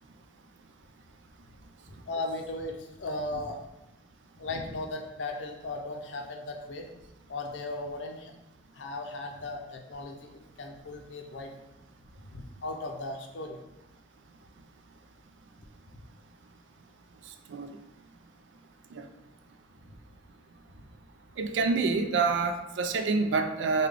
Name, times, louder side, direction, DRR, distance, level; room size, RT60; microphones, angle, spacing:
voice 1, 1.9-3.6 4.4-6.9 7.3-8.3 8.7-11.5 12.3-13.6 19.9-20.0 20.7-20.9, left 2 dB, 75° left, 3 dB, 0.5 m, -37 dB
voice 2, 21.4-23.9, right 4 dB, 75° right, 7 dB, 0.3 m, -27 dB
3.6 x 2.2 x 3.3 m, 0.97 s
head